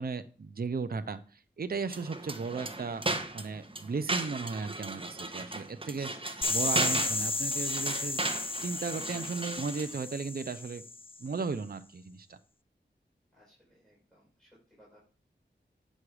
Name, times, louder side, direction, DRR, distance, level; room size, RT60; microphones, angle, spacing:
voice 1, 0.0-3.0 3.3-8.2 8.6-10.9 11.2-12.4, right 4 dB, 55° right, 10 dB, 0.7 m, -36 dB
sound 1, 1.8-10.0, right 2 dB, 30° right, 1.3 m, -36 dB
sound 2, 6.4-11.2, left 3 dB, 30° left, 0.6 m, -33 dB
voice 2, 13.3-15.0, equal, 5° left, -6 dB, 5.7 m, -63 dB
9.6 x 6.4 x 4.9 m, 0.40 s
cardioid pair, 45°, 19 cm